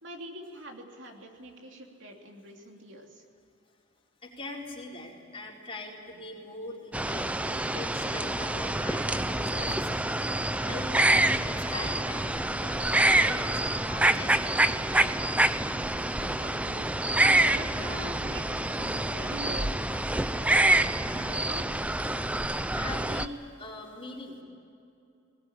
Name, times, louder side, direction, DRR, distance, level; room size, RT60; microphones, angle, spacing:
voice 1, 0.0-3.2 16.2-21.8, right 2 dB, 65° right, 1 dB, 3.0 m, -44 dB
voice 2, 4.2-10.1 10.6-15.4 22.2-24.4, left 2 dB, 25° left, -3 dB, 4.3 m, -42 dB
sound 1, 6.9-23.3, right 1 dB, 5° right, 0.5 m, -27 dB
sound 2, 7.9-17.5, right 2 dB, 35° right, 5.8 m, -46 dB
20.5 x 20.0 x 10.0 m, 2.6 s
head